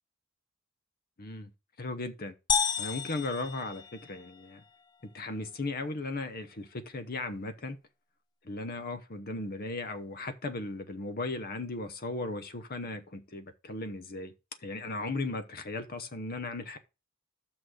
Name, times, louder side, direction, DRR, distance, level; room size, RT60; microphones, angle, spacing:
voice 1, 1.2-1.5 1.8-2.3 2.8-4.6 5.0-7.8 8.4-14.3 14.6-16.8, left 2 dB, 45° left, 0.9 m, -36 dB
sound 1, 2.5-4.4, left 7 dB, 20° left, 0.4 m, -31 dB
6.4 x 6.0 x 6.2 m
head